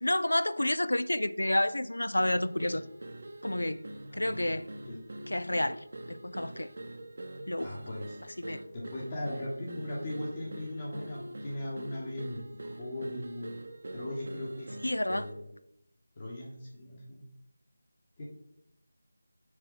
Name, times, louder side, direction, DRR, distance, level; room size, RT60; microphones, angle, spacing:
voice 1, 0.0-2.8 3.4-3.8 4.1-4.7 5.3-6.7 7.5-7.7 8.4-8.6 14.8-15.3, left 1 dB, 85° left, 0.4 m, -30 dB
sound 1, 2.2-15.5, right 1 dB, 55° right, 0.7 m, -44 dB
voice 2, 4.1-4.6 4.8-5.0 7.6-8.2 8.7-13.5 13.9-14.7 15.1-15.5 16.2-17.2 18.2-18.3, left 1 dB, 30° left, 1.3 m, -38 dB
6.3 x 4.2 x 3.9 m
figure-of-eight pair, 170°, 0 cm